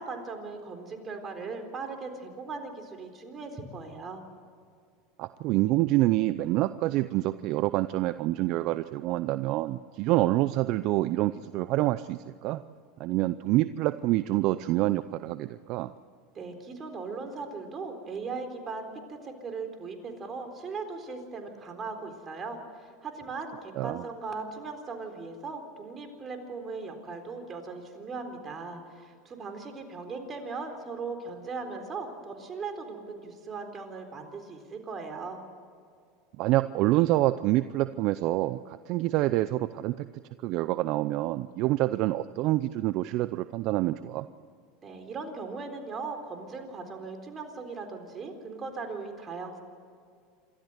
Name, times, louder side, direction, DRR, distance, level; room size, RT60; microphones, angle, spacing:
voice 1, 0.0-4.2 16.3-22.6 23.0-35.4 44.8-49.6, right 4 dB, 30° right, 5 dB, 3.9 m, -38 dB
voice 2, 5.2-12.6 13.0-15.9 23.7-24.0 36.4-40.1 40.4-44.3, right 16 dB, 55° right, 14 dB, 0.6 m, -27 dB
27.5 x 14.0 x 8.0 m, 2.2 s
hypercardioid pair, 95°, 0 cm